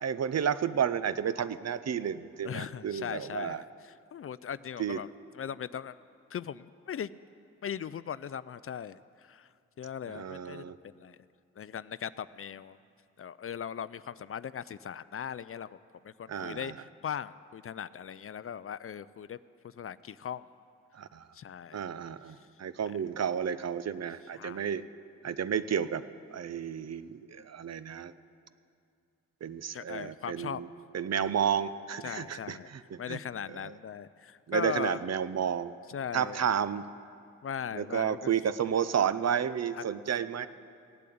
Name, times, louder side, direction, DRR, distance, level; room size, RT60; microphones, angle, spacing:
voice 1, 0.0-3.6 4.8-5.0 10.1-10.8 16.3-16.7 20.9-21.3 21.7-24.8 25.2-26.0 26.3-28.1 29.4-30.7 30.9-33.2 33.6-33.7 34.5-35.8 36.1-36.8 37.7-40.5, right 8 dB, 50° right, 14 dB, 0.7 m, -31 dB
voice 2, 2.4-5.1 5.3-6.0 6.3-7.1 7.6-9.5 9.8-10.6 11.0-11.2 11.6-12.8 13.2-15.8 16.0-19.4 19.6-20.5 21.3-21.8 24.3-24.7 29.7-30.6 32.0-32.7 33.0-35.0 35.9-36.4 37.4-38.3 39.8-39.9, left 8 dB, 40° left, 16 dB, 0.4 m, -39 dB
16.5 x 8.4 x 8.5 m, 2.4 s
supercardioid pair, 50°, 34 cm